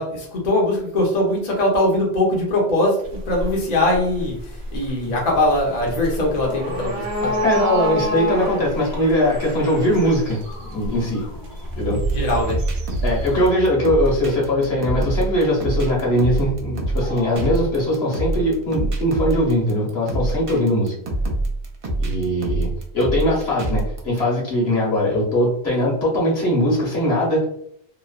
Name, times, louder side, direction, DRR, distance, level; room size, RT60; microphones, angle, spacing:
voice 1, 0.0-4.4 4.7-7.4 12.1-12.6, left 1 dB, 45° left, -2 dB, 0.7 m, -21 dB
sound 1, 3.0-13.5, equal, 70° right, 0.9 m, -29 dB
voice 2, 7.4-10.4 10.7-11.2 11.7-12.0 13.0-21.0 22.0-22.7 22.9-27.5, equal, 65° left, -4 dB, 1.2 m, -20 dB
sound 2, 10.4-17.4, right 4 dB, 85° left, 0.9 m, -34 dB
sound 3, 11.9-24.2, right 2 dB, 45° right, 0.4 m, -25 dB
2.9 x 2.0 x 2.3 m, 0.69 s
omnidirectional pair, 1.1 m